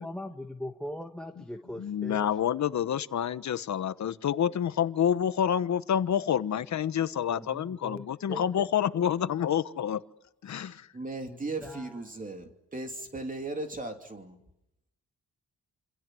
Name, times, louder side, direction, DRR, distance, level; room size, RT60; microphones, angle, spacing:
voice 1, 0.0-2.3 7.3-8.6 11.2-12.0, left 1 dB, 5° left, 5 dB, 1.5 m, -41 dB
voice 2, 1.8-10.0 10.4-10.9, left 9 dB, 60° left, 13 dB, 1.2 m, -28 dB
voice 3, 10.5-14.4, right 2 dB, 25° right, 4 dB, 2.9 m, -37 dB
28.0 x 26.5 x 7.8 m, 0.85 s
wide cardioid pair, 130°, 32 cm